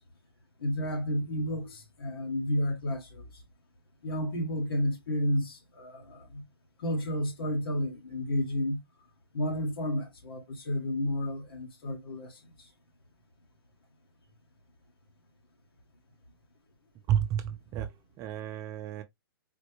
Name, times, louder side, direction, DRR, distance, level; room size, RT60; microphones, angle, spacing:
voice 1, 0.6-3.3 4.0-6.4 6.8-8.8 9.3-12.7, equal, 80° left, 1.4 m, -31 dB
voice 2, 17.1-19.0, right 10 dB, 25° right, 0.6 m, -31 dB
4.2 x 2.1 x 3.1 m
hypercardioid pair, 135°, 12 cm